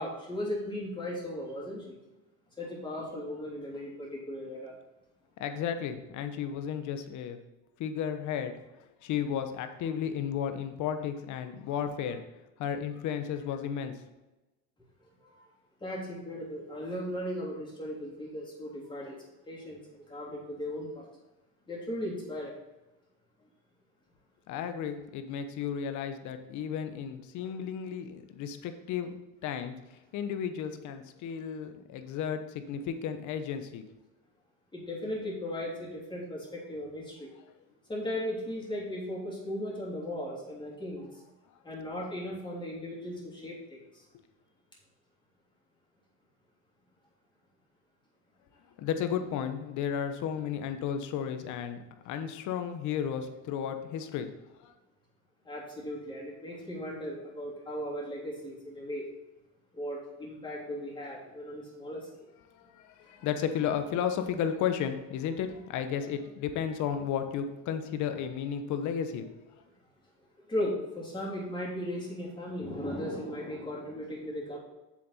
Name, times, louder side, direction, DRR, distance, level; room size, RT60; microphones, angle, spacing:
voice 1, 0.0-2.0 2.6-4.7 15.2-15.5 15.8-21.1 21.7-22.5 34.7-37.3 37.9-41.2 41.6-44.1 55.4-59.1 59.7-62.3 63.0-63.1 70.4-74.6, left 1 dB, 15° left, -4 dB, 3.2 m, -37 dB
voice 2, 5.4-7.4 7.8-8.5 9.0-12.2 12.6-14.0 24.5-29.1 29.4-29.7 30.1-33.8 48.8-54.3 54.6-54.7 62.5-69.6, left 8 dB, 60° left, 8 dB, 1.1 m, -33 dB
7.5 x 7.4 x 4.2 m, 1.0 s
cardioid pair, 125°, 33 cm